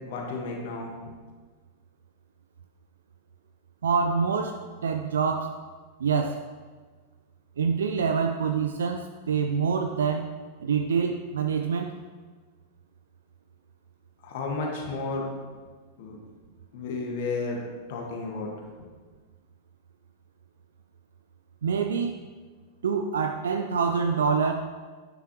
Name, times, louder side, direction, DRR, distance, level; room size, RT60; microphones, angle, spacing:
voice 1, 0.1-0.9 14.2-15.2 16.0-16.2 16.7-17.6 17.9-18.5, left 3 dB, 50° left, 0 dB, 1.7 m, -32 dB
voice 2, 3.8-5.6 6.0-6.4 7.6-10.3 10.6-11.9 21.6-22.2 22.8-24.5, right 6 dB, 65° right, 5 dB, 0.5 m, -26 dB
10.5 x 10.0 x 3.1 m, 1.4 s
figure-of-eight pair, 90°, 0 cm